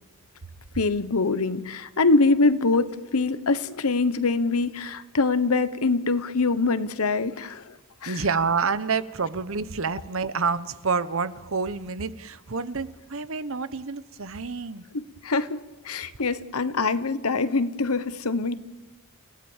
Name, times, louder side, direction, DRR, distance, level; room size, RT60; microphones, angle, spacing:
voice 1, 0.7-7.8 8.0-8.2 14.9-18.5, left 3 dB, 85° left, 13 dB, 1.1 m, -24 dB
voice 2, 8.1-14.8, right 5 dB, 65° right, 14 dB, 0.9 m, -28 dB
30.0 x 16.0 x 7.3 m, 1.1 s
head